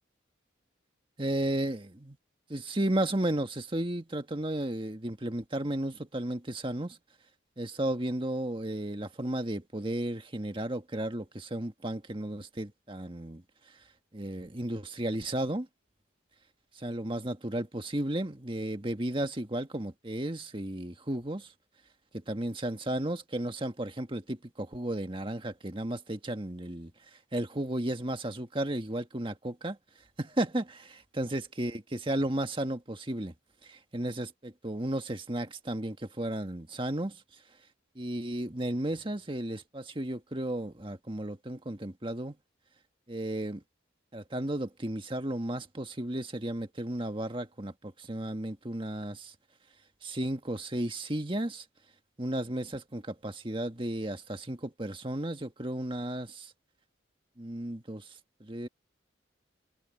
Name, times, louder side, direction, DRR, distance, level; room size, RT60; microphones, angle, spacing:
voice 1, 1.2-2.2 2.5-7.0 7.6-13.4 14.1-15.7 16.8-21.5 22.1-26.9 27.3-29.8 30.2-33.3 33.6-37.2 37.9-42.3 43.1-43.6 44.1-49.3 50.0-51.6 52.2-56.5 57.4-58.1 58.4-58.7, right 1 dB, 25° right, 1.6 m, -34 dB
head